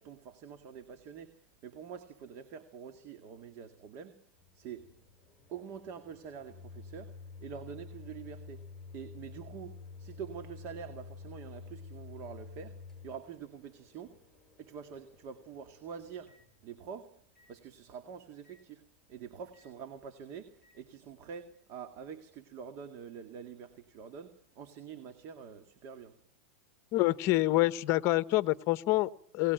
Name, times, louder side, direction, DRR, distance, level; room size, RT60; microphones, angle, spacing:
voice 1, 0.0-4.3 4.5-4.9 5.5-8.6 8.9-14.2 14.6-16.4 16.6-17.2 17.5-26.2, right 7 dB, 45° right, 2.0 m, -46 dB
Microwave oven, 4.4-16.9 17.4-17.5 18.4-18.6 19.5-19.7 20.6-20.8, left 4 dB, 5° left, 7.2 m, -50 dB
voice 2, 26.9-29.5, left 18 dB, 40° left, 1.0 m, -27 dB
24.0 x 18.5 x 9.2 m
supercardioid pair, 140°, 7 cm